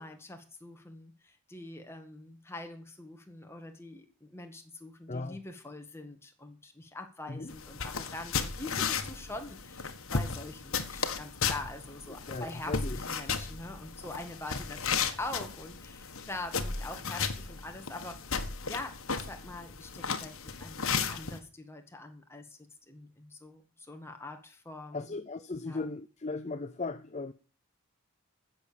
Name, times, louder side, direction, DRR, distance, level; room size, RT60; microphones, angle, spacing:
voice 1, 0.0-18.2 18.7-22.6 22.9-25.1 25.7-25.9, left 2 dB, 10° left, 1.9 m, -44 dB
voice 2, 5.1-5.4 7.3-7.5 12.3-13.0 24.9-27.3, left 3 dB, 30° left, 0.6 m, -37 dB
sound 1, 7.5-21.4, left 5 dB, 65° left, 1.5 m, -35 dB
15.5 x 7.2 x 7.0 m
head